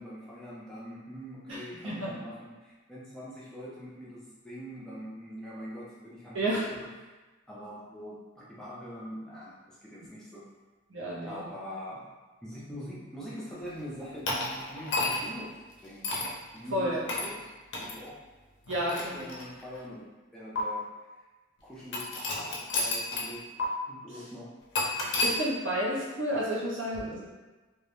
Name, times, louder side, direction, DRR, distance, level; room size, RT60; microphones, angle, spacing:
voice 1, 0.0-6.9 7.5-10.4 11.2-18.2 18.8-20.0 20.3-20.9 21.6-22.2 22.5-23.5 23.9-24.6, equal, 5° left, -8 dB, 0.4 m, -43 dB
voice 2, 1.5-2.1 6.3-6.6 10.9-11.4 16.7-17.0 18.7-19.2 25.2-27.2, equal, 65° right, -5 dB, 0.7 m, -31 dB
sound 1, 14.3-15.4 16.0-16.3 17.1-17.3 17.7-17.9 18.7-19.8 20.6-20.7 21.9-23.3 23.6-23.7 24.7-25.3, left 2 dB, 60° left, 0.5 m, -31 dB
2.3 x 2.0 x 2.9 m, 1.2 s
head